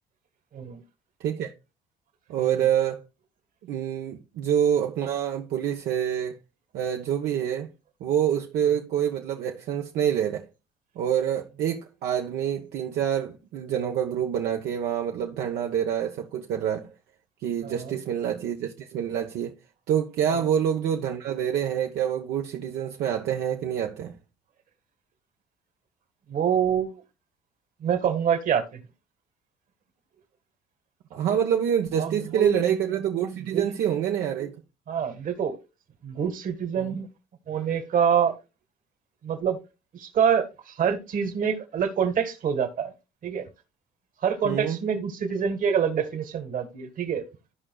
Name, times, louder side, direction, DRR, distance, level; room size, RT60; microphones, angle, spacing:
voice 1, 1.2-1.5 2.3-3.1 3.7-6.4 6.7-7.7 8.0-10.5 11.0-16.9 17.4-19.5 19.9-24.2 31.1-34.6 36.8-36.9 44.4-44.8, right 9 dB, 75° right, 1.0 m, -26 dB
voice 2, 17.6-17.9 20.3-20.4 26.3-27.0 27.8-28.6 31.3-31.4 32.0-32.6 33.5-33.7 34.9-35.6 36.0-37.1 37.5-38.3 39.2-39.6 39.9-42.9 43.2-43.5 44.2-47.2, right 7 dB, 55° right, 1.8 m, -26 dB
14.5 x 5.0 x 2.3 m
cardioid pair, 110°, 17 cm